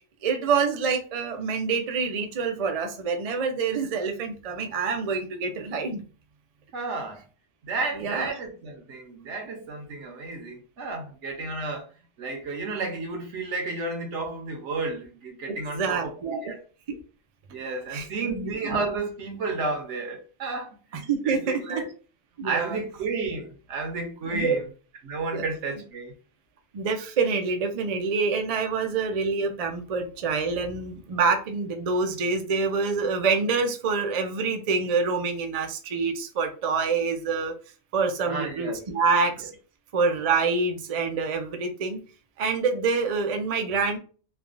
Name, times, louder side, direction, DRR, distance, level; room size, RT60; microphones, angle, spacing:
voice 1, 0.2-6.0 8.0-8.3 15.7-16.5 16.9-17.0 17.9-18.6 20.9-21.8 22.4-22.8 24.3-24.6 25.3-25.4 26.7-37.6 37.9-39.5 39.9-42.0 42.4-44.0, right 4 dB, 55° right, 0.4 m, -26 dB
voice 2, 6.7-7.2 7.6-11.9 12.2-16.6 17.5-21.9 22.4-24.6 25.0-26.1 38.3-38.9, right 3 dB, 75° right, 1.1 m, -32 dB
3.2 x 2.2 x 2.5 m
omnidirectional pair, 1.2 m